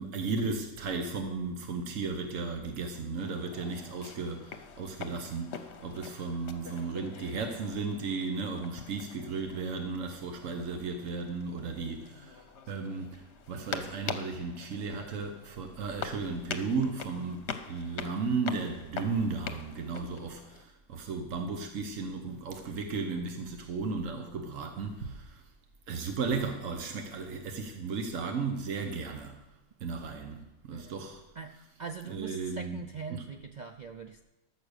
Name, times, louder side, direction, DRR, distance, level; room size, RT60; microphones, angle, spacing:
voice 1, 0.0-25.4 25.9-29.4 29.8-31.2 32.1-32.8 33.1-33.2, right 4 dB, 85° right, 5 dB, 1.4 m, -35 dB
sound 1, 3.2-20.6, left 6 dB, 65° left, 1.1 m, -44 dB
voice 2, 31.3-34.2, right 5 dB, 55° right, 7 dB, 0.5 m, -42 dB
14.0 x 6.5 x 6.5 m, 0.97 s
omnidirectional pair, 1.3 m